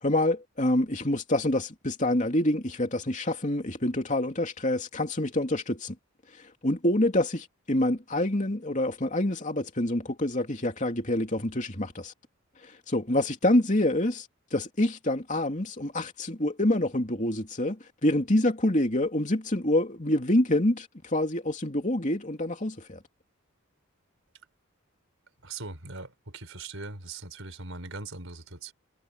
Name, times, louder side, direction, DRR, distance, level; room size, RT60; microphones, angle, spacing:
voice 1, 0.0-5.9 6.3-12.1 12.6-23.0, left 1 dB, 35° left, 3.0 m, -27 dB
voice 2, 25.4-28.7, right 3 dB, 65° right, 5.1 m, -40 dB
head